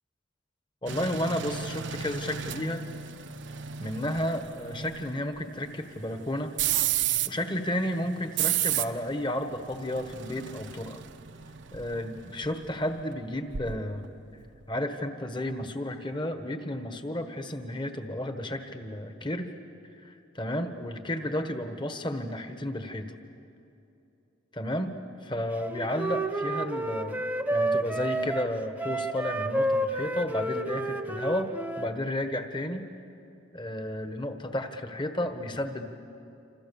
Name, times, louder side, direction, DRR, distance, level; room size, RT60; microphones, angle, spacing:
voice 1, 0.8-2.8 3.8-6.5 7.2-11.0 11.7-14.0 14.7-19.5 20.0-23.1 24.5-24.9 25.2-27.2 27.5-31.5 31.8-32.8 33.5-35.9, left 1 dB, 25° left, 7 dB, 1.4 m, -32 dB
sound 1, 0.9-14.0 14.4-14.6, right 10 dB, 65° right, 0.8 m, -33 dB
Wind instrument woodwind instrument, 25.6-31.9, right 1 dB, 10° right, 0.8 m, -30 dB
28.0 x 27.0 x 7.1 m, 2.8 s
head